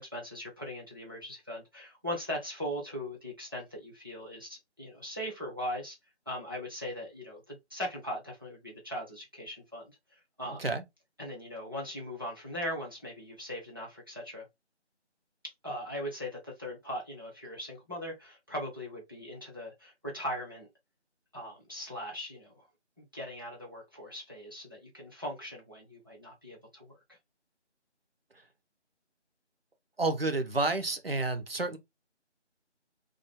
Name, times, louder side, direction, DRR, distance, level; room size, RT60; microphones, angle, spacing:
voice 1, 0.0-6.0 6.3-9.9 10.4-10.7 11.2-14.5 15.6-20.7 21.3-22.6 23.0-26.9, equal, 20° right, 1.2 m, -39 dB
voice 2, 30.0-31.8, right 2 dB, 55° right, 1.1 m, -30 dB
3.7 x 3.3 x 3.6 m
figure-of-eight pair, 175°, 35 cm